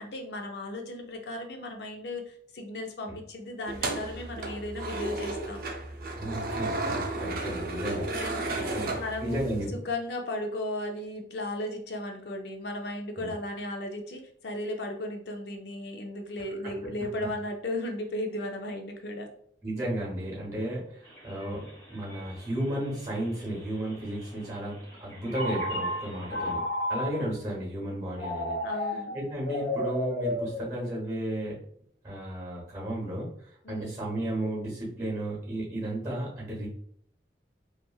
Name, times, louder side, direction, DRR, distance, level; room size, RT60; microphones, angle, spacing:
voice 1, 0.0-5.8 8.1-8.4 8.8-9.4 9.8-19.3 26.3-26.6 28.6-29.2 33.6-33.9, left 1 dB, 65° left, 3 dB, 0.5 m, -36 dB
sound 1, 3.7-9.7, right 2 dB, 50° right, 0.4 m, -33 dB
voice 2, 6.0-9.8 13.2-13.3 16.6-16.7 19.6-26.6 26.9-31.6 32.0-36.7, right 1 dB, 20° right, -4 dB, 0.9 m, -34 dB
sound 2, 21.0-26.5, left 1 dB, 10° left, 1.0 m, -47 dB
Telephone, 25.3-27.3 28.2-31.2, left 1 dB, 80° left, 0.8 m, -32 dB
2.9 x 2.4 x 2.2 m, 0.65 s
head